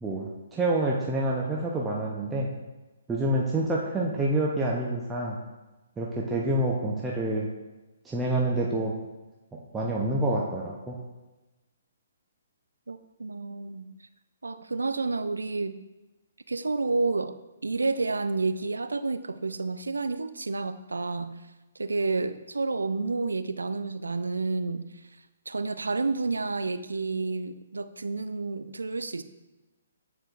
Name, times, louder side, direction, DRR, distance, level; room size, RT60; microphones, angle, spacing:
voice 1, 0.0-2.5 3.1-5.4 6.0-7.5 8.0-8.9 9.7-11.0, right 1 dB, 10° right, -4 dB, 0.6 m, -27 dB
voice 2, 12.9-13.9 14.4-15.8 16.5-17.4 17.6-21.4 21.8-24.9 25.5-29.2, right 3 dB, 80° right, 12 dB, 0.3 m, -30 dB
8.6 x 4.5 x 2.5 m, 1.1 s
figure-of-eight pair, 130°, 0 cm